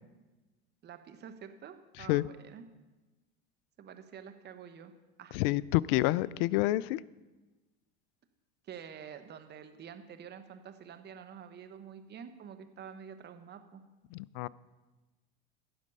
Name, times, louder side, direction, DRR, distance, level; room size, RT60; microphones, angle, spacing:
voice 1, 0.8-2.6 3.8-4.9 5.2-5.4 8.6-13.8, right 8 dB, 30° right, 9 dB, 1.0 m, -48 dB
voice 2, 5.3-7.0 14.1-14.5, left 17 dB, 60° left, 21 dB, 0.4 m, -28 dB
15.5 x 6.3 x 5.4 m, 1.2 s
hypercardioid pair, 95°, 32 cm